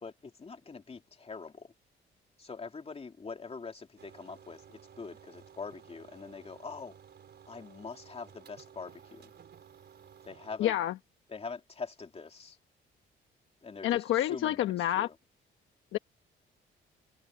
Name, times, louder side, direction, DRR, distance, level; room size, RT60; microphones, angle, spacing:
voice 1, 0.0-1.7 2.4-6.9 7.5-9.3 10.2-10.7 11.3-12.6 13.6-14.7 14.9-15.1, left 4 dB, 30° left, 2.8 m, -43 dB
sound 1, 4.0-10.6, right 8 dB, 60° right, 4.6 m, -55 dB
voice 2, 10.6-10.9 13.8-15.1 15.9-16.0, left 13 dB, 80° left, 1.0 m, -28 dB
cardioid pair, 90°, 20 cm